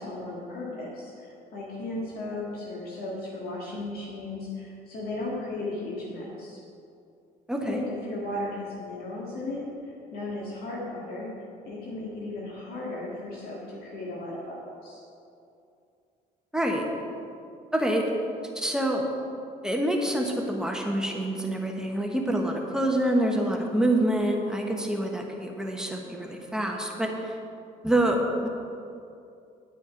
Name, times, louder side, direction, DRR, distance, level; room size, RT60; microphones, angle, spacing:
voice 1, 0.0-6.6 7.6-11.3 11.6-15.0, left 2 dB, 65° left, -4 dB, 1.9 m, -36 dB
voice 2, 7.5-7.8 16.5-16.9 17.7-18.1 18.5-19.1 19.6-27.4 27.8-28.5, right 1 dB, 5° right, 0 dB, 1.2 m, -26 dB
9.9 x 8.3 x 5.2 m, 2.6 s
cardioid pair, 110°, 17 cm